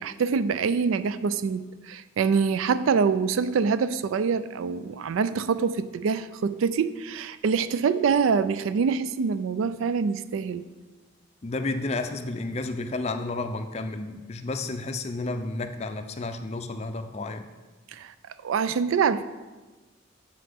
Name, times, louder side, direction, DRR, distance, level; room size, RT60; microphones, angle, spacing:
voice 1, 0.0-10.7 17.9-18.1 18.4-19.2, right 5 dB, 90° right, 14 dB, 0.4 m, -25 dB
voice 2, 11.4-17.4, left 2 dB, 35° left, 8 dB, 0.4 m, -31 dB
7.4 x 6.8 x 3.5 m, 1.2 s
head